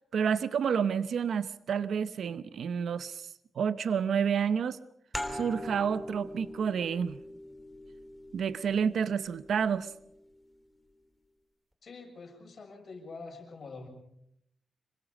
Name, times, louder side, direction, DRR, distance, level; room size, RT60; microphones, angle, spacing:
voice 1, 0.1-3.3 3.5-4.8 5.3-7.2 8.3-9.9, right 7 dB, 75° right, 14 dB, 0.8 m, -29 dB
sound 1, 5.1-10.4, left 1 dB, ahead, 3.1 m, -42 dB
voice 2, 11.8-13.9, left 3 dB, 55° left, 3 dB, 6.6 m, -45 dB
26.0 x 23.0 x 5.3 m, 0.74 s
wide cardioid pair, 110°, 0 cm